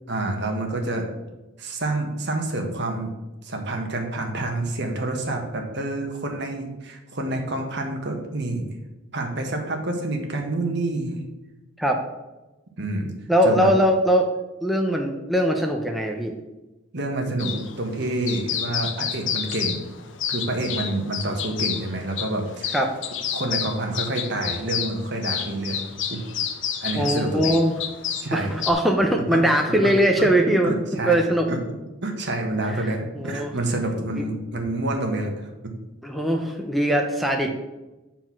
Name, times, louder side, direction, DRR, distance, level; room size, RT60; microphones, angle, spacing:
voice 1, 0.1-1.1 1.6-3.1 3.4-8.7 9.1-11.2 12.8-13.1 13.4-13.7 16.9-19.8 20.3-22.7 23.3-25.8 26.1-26.2 26.8-27.6 28.2-28.5 29.3-29.9 30.2-30.3 30.6-31.2 31.5-31.6 32.0-35.5, right 2 dB, 60° right, 3 dB, 1.4 m, -28 dB
voice 2, 13.3-14.3 14.6-16.3 22.7-22.9 27.0-27.7 28.3-31.5 32.8-32.9 33.1-33.5 34.2-34.3 36.0-37.5, equal, ahead, 2 dB, 0.6 m, -21 dB
sound 1, 17.4-28.7, left 8 dB, 65° left, 0.8 m, -30 dB
7.9 x 4.5 x 5.9 m, 1.1 s
head